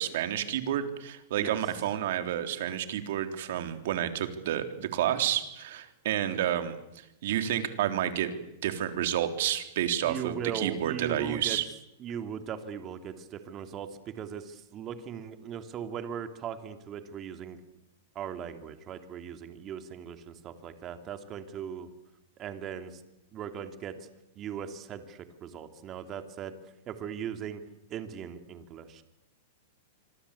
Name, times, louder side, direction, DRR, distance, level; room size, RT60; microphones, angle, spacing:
voice 1, 0.0-6.8 7.2-11.6, right 11 dB, 65° right, 8 dB, 3.5 m, -30 dB
voice 2, 10.0-11.6 12.0-17.6 18.1-21.9 22.4-23.0 23.3-23.9 24.3-26.5 26.9-27.6 27.9-29.0, right 8 dB, 30° right, 8 dB, 2.9 m, -38 dB
26.0 x 24.0 x 8.5 m, 0.87 s
hypercardioid pair, 135°, 0 cm